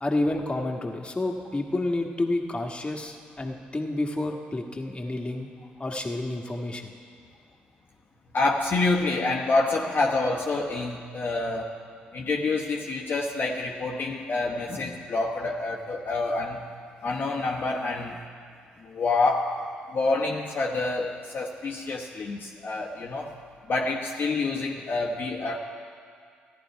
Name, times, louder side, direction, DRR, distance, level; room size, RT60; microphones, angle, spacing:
voice 1, 0.0-5.5 5.8-6.9, left 2 dB, 25° left, 1 dB, 1.5 m, -29 dB
voice 2, 8.3-11.7 12.1-16.6 17.0-18.2 18.8-19.5 19.9-23.3 23.7-25.6, left 3 dB, 50° left, -2 dB, 1.0 m, -27 dB
14.5 x 10.5 x 4.7 m, 2.2 s
hypercardioid pair, 45°, 4 cm